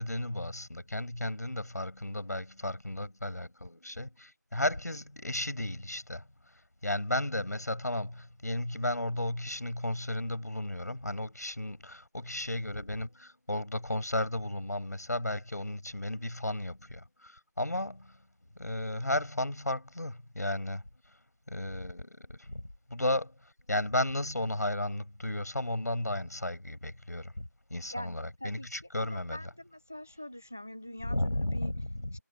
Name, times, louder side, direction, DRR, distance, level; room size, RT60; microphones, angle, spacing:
voice 1, 0.0-6.2 6.8-18.2 18.6-20.8 21.5-23.3 23.7-29.4 31.1-32.2, left 1 dB, 60° left, 6.9 m, -34 dB
voice 2, 27.9-28.7 29.0-31.7 32.1-32.2, left 1 dB, 10° right, 0.8 m, -43 dB
figure-of-eight pair, 180°, 10 cm